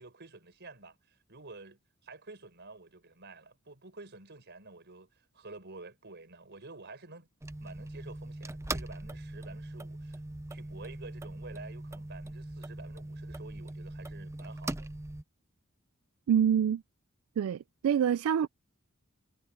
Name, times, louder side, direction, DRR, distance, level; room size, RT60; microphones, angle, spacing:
voice 1, 0.0-7.3 7.6-10.2 10.5-14.9, right 3 dB, 55° right, 5.4 m, -50 dB
sound 1, 7.4-15.2, right 1 dB, 15° right, 0.6 m, -41 dB
voice 2, 16.3-16.8 17.4-18.5, right 8 dB, 80° right, 0.3 m, -26 dB
head